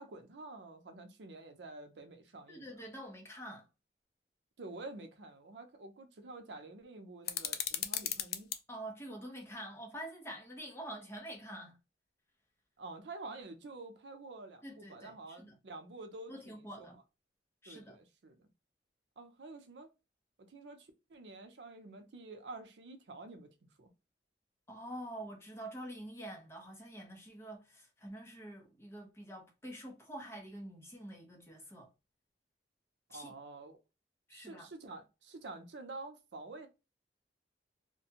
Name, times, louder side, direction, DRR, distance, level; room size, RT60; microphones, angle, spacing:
voice 1, 0.0-2.7 4.6-8.5 12.8-17.0 17.7-18.5 19.2-19.9 20.5-23.5 23.8-23.9 33.1-33.8 34.3-36.7, right 2 dB, 80° right, 0.5 m, -49 dB
voice 2, 2.5-3.7 8.7-11.8 14.6-15.5 16.3-16.9 17.6-18.0 24.7-31.9 33.1-33.3 34.3-34.7, right 1 dB, 15° left, 0.7 m, -46 dB
sound 1, 7.2-8.6, left 10 dB, 55° left, 0.3 m, -36 dB
2.5 x 2.2 x 2.7 m
head